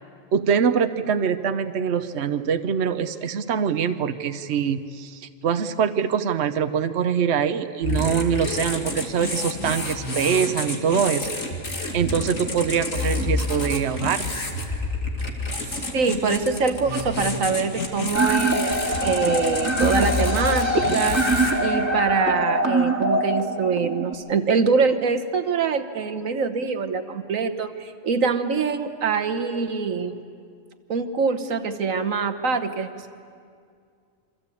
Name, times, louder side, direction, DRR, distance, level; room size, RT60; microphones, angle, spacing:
voice 1, 0.3-11.3 11.9-14.2, right 7 dB, 60° right, 8 dB, 1.1 m, -24 dB
sound 1, 7.8-21.5, left 3 dB, 80° left, 3.0 m, -29 dB
voice 2, 15.7-21.2 21.6-30.2 30.9-33.1, right 5 dB, 80° right, 8 dB, 1.6 m, -24 dB
sound 2, 18.1-24.1, right 1 dB, 10° right, 2.1 m, -23 dB
28.0 x 25.0 x 8.5 m, 2.3 s
omnidirectional pair, 1.4 m